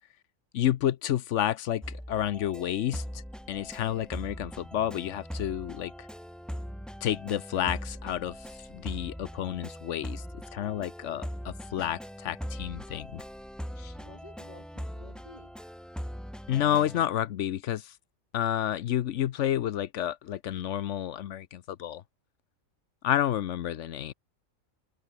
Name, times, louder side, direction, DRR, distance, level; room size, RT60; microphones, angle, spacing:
voice 1, 0.5-3.0 3.5-6.1 7.0-8.4 8.7-10.2 10.5-13.2 13.8-13.9 16.5-17.9 18.3-22.0 23.0-24.1, left 11 dB, 70° left, 0.9 m, -30 dB
sound 1, 1.8-17.0, equal, ahead, 0.9 m, -41 dB
voice 2, 13.9-15.5, left 1 dB, 30° left, 6.2 m, -52 dB
open air
omnidirectional pair, 1.4 m